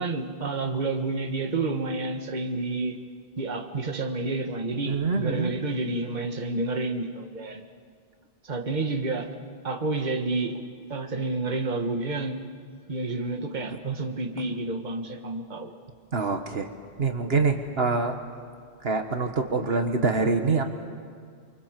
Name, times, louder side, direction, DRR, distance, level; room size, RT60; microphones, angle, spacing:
voice 1, 0.0-3.0 3.4-7.6 8.4-9.3 9.6-10.5 10.9-12.4 12.9-15.7, right 3 dB, 45° right, 4 dB, 1.7 m, -29 dB
voice 2, 4.9-5.5 16.1-16.7 17.0-18.2 18.8-20.6, right 4 dB, 65° right, 5 dB, 1.7 m, -25 dB
29.5 x 24.0 x 7.5 m, 2.1 s
omnidirectional pair, 1.1 m